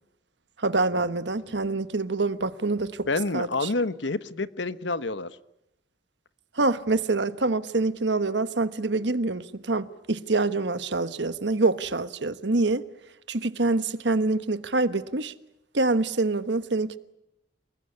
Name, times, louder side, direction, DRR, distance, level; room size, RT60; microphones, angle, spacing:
voice 1, 0.6-3.1 3.3-3.7 6.6-12.8 13.3-15.3 15.7-17.0, right 3 dB, 65° right, 1.3 m, -26 dB
voice 2, 3.1-5.3, left 3 dB, 75° left, 1.2 m, -28 dB
29.0 x 20.0 x 9.8 m
head